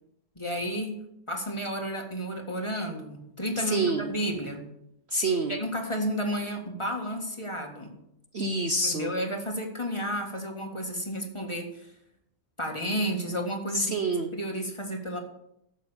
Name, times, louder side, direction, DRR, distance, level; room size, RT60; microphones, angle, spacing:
voice 1, 0.4-1.0 1.3-4.7 5.5-8.0 8.8-11.9 12.6-13.9 14.3-15.2, equal, 20° left, 2 dB, 1.8 m, -32 dB
voice 2, 3.6-4.1 5.1-5.6 8.3-9.1 13.7-14.3, right 2 dB, 50° right, 6 dB, 1.0 m, -27 dB
12.0 x 7.8 x 7.0 m, 0.81 s
omnidirectional pair, 1.7 m